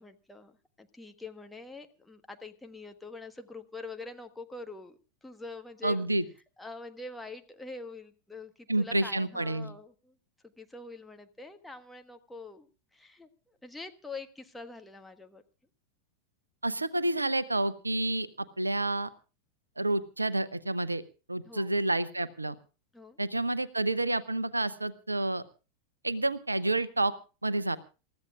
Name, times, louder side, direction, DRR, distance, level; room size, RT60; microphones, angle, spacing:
voice 1, 0.0-6.0 6.6-10.2 10.4-15.4 21.4-21.8 22.9-23.2, left 3 dB, 5° left, 5 dB, 1.4 m, -45 dB
voice 2, 5.8-6.2 8.7-9.7 16.6-19.1 19.8-21.0 21.3-22.5 23.2-25.4 26.0-27.1 27.4-27.8, right 2 dB, 80° right, 16 dB, 0.8 m, -29 dB
28.0 x 14.5 x 2.4 m, 0.33 s
figure-of-eight pair, 90°, 0 cm